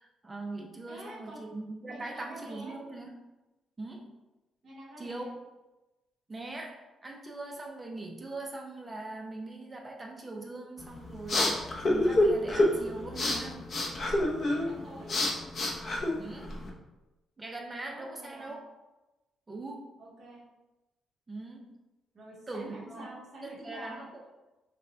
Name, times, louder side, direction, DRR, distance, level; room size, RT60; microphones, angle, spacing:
voice 1, 0.0-3.1 3.8-4.1 5.0-5.3 6.3-13.7 16.2-16.6 17.4-18.6 19.5-19.9 21.3-21.7 22.5-23.1 23.4-24.2, right 2 dB, 15° right, 0 dB, 0.6 m, -41 dB
voice 2, 0.9-1.4 1.9-2.7 4.6-5.3 14.4-15.4 17.9-18.5 20.0-20.4 22.1-24.0, right 1 dB, 40° right, -5 dB, 1.4 m, -47 dB
sound 1, 10.8-16.7, left 1 dB, 35° left, 0.7 m, -28 dB
5.6 x 2.3 x 3.7 m, 1.0 s
cardioid pair, 155°, 0 cm